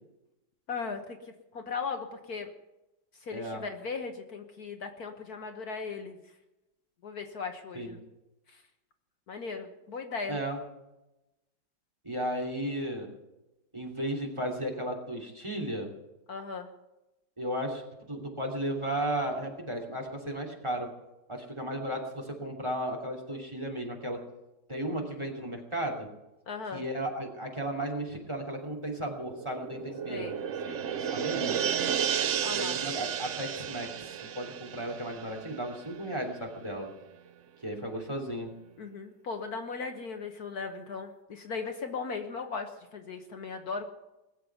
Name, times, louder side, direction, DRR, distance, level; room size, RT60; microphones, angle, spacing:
voice 1, 0.7-2.5 3.2-6.2 7.0-8.0 8.5-8.6 9.3-10.4 16.3-16.7 26.5-26.8 30.1-30.9 32.4-32.8 38.8-43.9, left 5 dB, 60° left, 5 dB, 1.6 m, -38 dB
voice 2, 3.3-3.6 7.7-8.0 10.3-10.6 12.0-13.1 13.7-15.9 17.4-17.8 18.1-20.9 21.3-24.2 24.7-26.1 26.7-30.3 31.1-31.6 32.5-36.9 37.6-38.5, right 1 dB, 15° right, 2 dB, 2.8 m, -34 dB
sound 1, 29.0-36.0 36.4-36.5, right 8 dB, 65° right, 0.7 m, -33 dB
20.0 x 7.5 x 9.3 m, 0.97 s
omnidirectional pair, 2.0 m